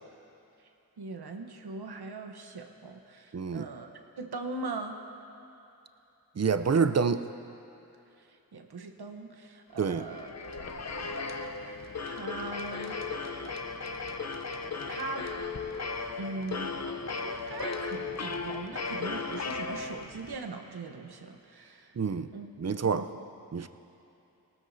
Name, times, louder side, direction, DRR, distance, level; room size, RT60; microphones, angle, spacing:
voice 1, 1.0-3.9 4.2-5.0 8.2-10.3 11.6-13.5 14.9-15.3 16.2-16.7 17.1-21.9 22.3-22.5 22.8-23.2, right 3 dB, 80° right, 4 dB, 1.0 m, -40 dB
voice 2, 3.3-3.7 6.4-7.2 9.8-10.1 22.0-22.3 22.6-23.1 23.5-23.7, right 5 dB, 40° right, 11 dB, 0.6 m, -27 dB
sound 1, 9.9-20.3, left 4 dB, 45° left, 0.8 m, -36 dB
19.0 x 13.0 x 2.7 m, 2.8 s
cardioid pair, 50°, 38 cm